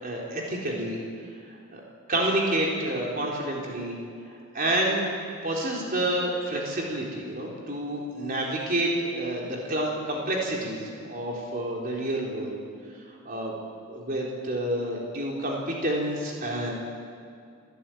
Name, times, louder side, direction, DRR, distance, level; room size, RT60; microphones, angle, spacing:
voice 1, 0.0-1.0 1.7-1.8 2.1-3.9 4.5-5.1 5.4-12.6 13.3-13.5 13.9-16.7, right 1 dB, 40° right, -2 dB, 4.0 m, -28 dB
27.0 x 14.0 x 9.3 m, 2.3 s
head